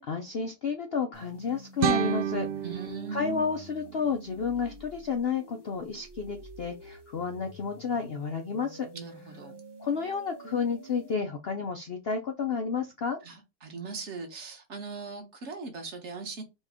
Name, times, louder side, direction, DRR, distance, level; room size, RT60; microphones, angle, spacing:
voice 1, 0.0-2.5 3.1-8.9 9.8-13.2, left 5 dB, 80° left, 0.5 m, -31 dB
sound 1, 1.1-11.1, right 1 dB, 20° right, 0.7 m, -49 dB
sound 2, 1.8-4.8, right 10 dB, 75° right, 0.7 m, -32 dB
voice 2, 2.6-3.5 8.9-9.6 13.2-16.4, right 4 dB, 45° right, 1.5 m, -39 dB
4.1 x 3.1 x 3.6 m
omnidirectional pair, 1.9 m